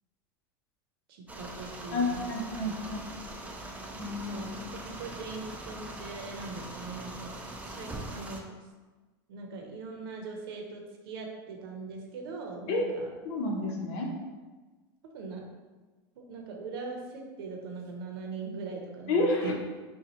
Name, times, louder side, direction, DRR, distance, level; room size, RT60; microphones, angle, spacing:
voice 1, 1.1-2.3 2.6-2.7 4.2-7.4 7.6-8.5 9.3-13.1 15.1-15.4 16.2-19.5, right 4 dB, 75° right, 1 dB, 0.9 m, -41 dB
sound 1, 1.3-8.4, right 1 dB, 10° right, 0.5 m, -42 dB
voice 2, 1.9-3.1 4.0-4.4 12.7-12.8 13.2-14.1 19.1-19.5, left 2 dB, 60° left, -1 dB, 1.1 m, -30 dB
5.5 x 2.4 x 3.0 m, 1.3 s
supercardioid pair, 120°, 12 cm